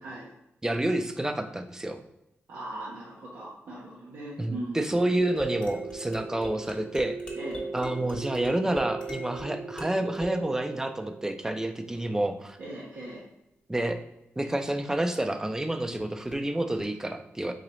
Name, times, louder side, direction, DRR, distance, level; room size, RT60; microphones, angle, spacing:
voice 1, 0.6-2.0 4.4-7.2 7.7-12.6 13.7-14.0 14.4-17.5, right 1 dB, 10° right, 7 dB, 0.4 m, -29 dB
voice 2, 2.5-4.9 7.3-7.6 12.6-13.2, right 1 dB, 80° right, -6 dB, 0.8 m, -39 dB
sound 1, 5.2-12.1 16.3-16.4 16.8-16.9, right 3 dB, 25° left, 0.9 m, -37 dB
3.9 x 2.9 x 3.1 m, 0.83 s
cardioid pair, 80°, 4 cm